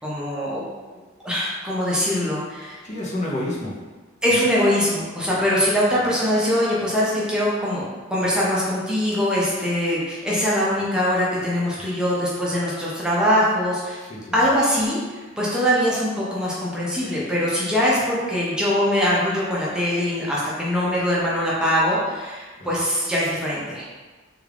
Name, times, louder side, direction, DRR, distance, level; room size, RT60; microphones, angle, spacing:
voice 1, 0.0-0.6 0.9-2.8 4.2-7.8 8.1-14.0 14.3-23.9, equal, 5° right, -7 dB, 0.6 m, -22 dB
voice 2, 2.8-3.8 4.3-4.4 11.7-11.9 14.0-14.4 22.6-22.7, left 1 dB, 40° left, -4 dB, 0.6 m, -30 dB
3.5 x 2.4 x 3.3 m, 1.3 s
head